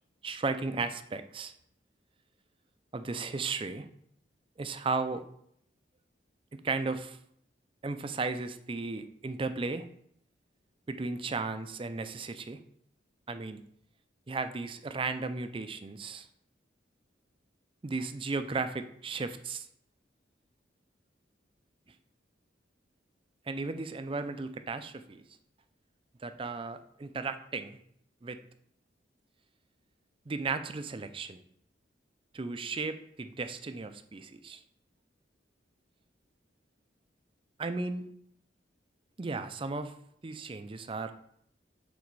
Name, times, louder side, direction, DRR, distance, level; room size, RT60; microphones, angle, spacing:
voice 1, 0.2-1.5 2.9-3.9 4.6-5.2 6.5-7.2 7.8-9.9 10.9-12.6 13.3-13.6 14.3-16.3 17.8-19.7 23.5-25.2 26.2-27.8 28.2-28.4 30.3-31.4 32.3-34.6 37.6-38.1 39.2-39.9 40.2-41.1, right 3 dB, 30° right, 10 dB, 0.4 m, -35 dB
7.3 x 4.0 x 4.7 m, 0.70 s
head